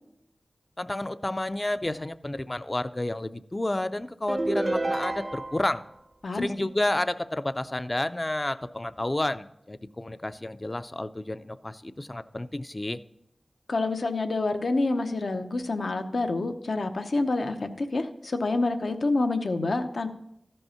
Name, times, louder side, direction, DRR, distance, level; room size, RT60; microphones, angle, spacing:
voice 1, 0.8-5.8 6.3-13.0, left 1 dB, 30° left, 13 dB, 0.4 m, -30 dB
sound 1, 4.3-5.8, right 2 dB, 40° right, 0.5 m, -29 dB
voice 2, 13.7-20.1, left 2 dB, 75° left, 7 dB, 0.7 m, -27 dB
13.5 x 5.4 x 5.6 m, 0.80 s
wide cardioid pair, 70°, 0 cm